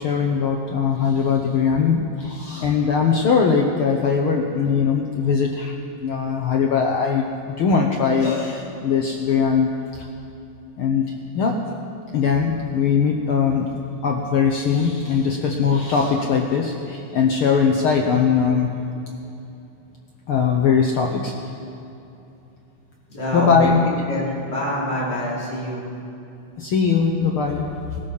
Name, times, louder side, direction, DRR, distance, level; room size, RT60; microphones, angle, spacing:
voice 1, 0.0-5.7 6.0-9.7 10.0-10.1 10.8-11.6 12.1-13.7 14.0-18.7 20.3-21.3 23.3-23.8 26.6-28.0, left 6 dB, 65° left, 1 dB, 1.3 m, -20 dB
voice 2, 23.1-25.9, equal, 35° left, -7 dB, 4.9 m, -26 dB
19.0 x 13.5 x 5.5 m, 2.8 s
omnidirectional pair, 3.4 m